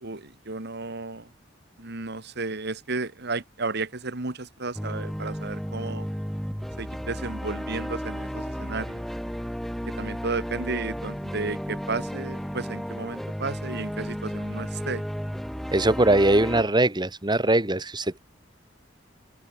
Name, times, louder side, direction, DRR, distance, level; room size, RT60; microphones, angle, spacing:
voice 1, 0.0-1.3 1.8-6.1 6.8-9.0 10.0-15.0, right 3 dB, 60° right, 2.2 m, -33 dB
sound 1, 4.7-16.6, equal, ahead, 1.2 m, -33 dB
voice 2, 15.7-18.2, right 2 dB, 25° right, 2.3 m, -21 dB
head